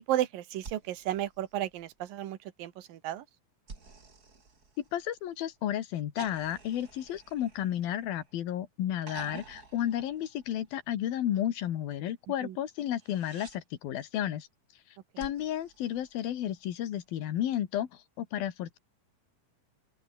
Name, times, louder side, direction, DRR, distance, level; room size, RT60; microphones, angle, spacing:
voice 1, 0.0-3.2 12.4-12.6 15.1-15.2, right 13 dB, 75° right, 3.2 m, -33 dB
sound 1, 0.6-2.2 3.7-5.4 6.2-8.4 9.0-10.9 12.8-13.6 15.2-16.7 18.2-18.3, right 4 dB, 25° right, 3.4 m, -51 dB
voice 2, 4.9-14.5 15.2-18.8, left 11 dB, 90° left, 3.6 m, -32 dB
open air
omnidirectional pair, 4.1 m